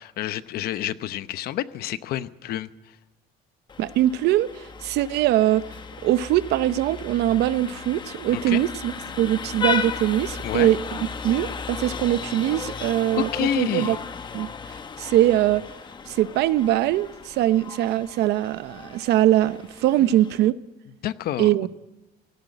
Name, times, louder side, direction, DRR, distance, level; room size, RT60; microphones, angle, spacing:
voice 1, 0.0-2.9 8.3-8.6 10.4-10.7 12.7-12.9 13.2-14.0 20.0-20.1 21.0-21.5, left 12 dB, 60° left, 0.9 m, -29 dB
Vehicle horn car horn honking, 3.7-20.5, left 6 dB, 25° left, 0.9 m, -35 dB
voice 2, 3.8-4.5 4.8-5.6 6.0-10.8 11.2-14.0 14.3-14.5 15.0-15.6 16.1-20.5 21.4-21.7, right 13 dB, 70° right, 0.8 m, -22 dB
17.5 x 16.0 x 9.7 m
cardioid pair, 140°, 18 cm